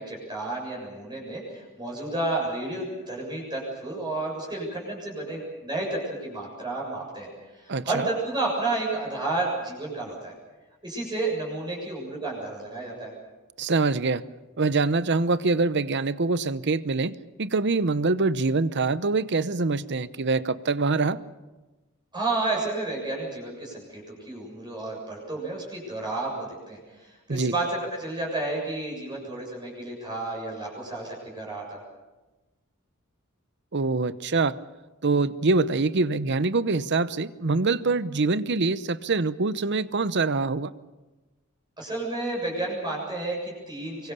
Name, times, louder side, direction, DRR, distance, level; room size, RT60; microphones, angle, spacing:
voice 1, 0.0-7.3 7.6-10.3 10.8-13.1 22.1-31.8 41.8-44.1, right 2 dB, 20° right, -2 dB, 7.2 m, -31 dB
voice 2, 7.7-8.1 13.6-14.2 14.6-17.1 17.4-21.2 27.3-27.5 33.7-34.6 35.0-40.7, right 3 dB, 55° right, 15 dB, 0.9 m, -24 dB
25.0 x 23.0 x 6.9 m, 1.1 s
head